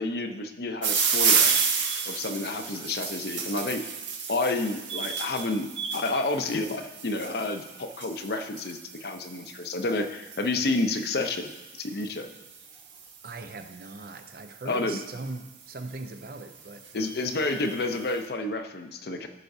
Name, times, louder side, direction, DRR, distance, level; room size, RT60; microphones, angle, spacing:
voice 1, 0.0-1.5 2.1-3.8 4.3-11.4 11.7-12.3 14.7-15.0 16.9-19.3, left 2 dB, 55° left, 7 dB, 0.6 m, -30 dB
sound 1, 0.8-14.0 14.9-15.3 15.9-16.0 16.2-16.3 16.6-17.9, right 6 dB, 80° right, 1.3 m, -31 dB
voice 2, 13.2-17.0, right 3 dB, 50° right, 7 dB, 0.6 m, -40 dB
15.0 x 5.7 x 2.7 m, 1.1 s
head